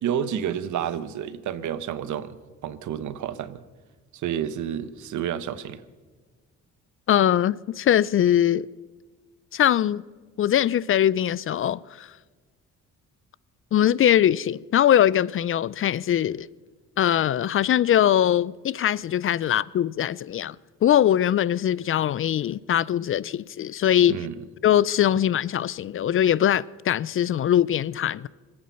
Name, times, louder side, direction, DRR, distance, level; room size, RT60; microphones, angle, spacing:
voice 1, 0.0-2.4 2.6-3.6 4.1-5.8 19.4-19.5 24.1-24.4, right 9 dB, 75° right, 1.1 m, -30 dB
voice 2, 7.1-8.7 9.5-10.0 10.4-12.1 13.7-16.5 17.0-20.6 20.8-24.2 24.6-28.3, left 10 dB, 45° left, 0.4 m, -21 dB
25.5 x 8.7 x 5.7 m
cardioid pair, 90°, 30 cm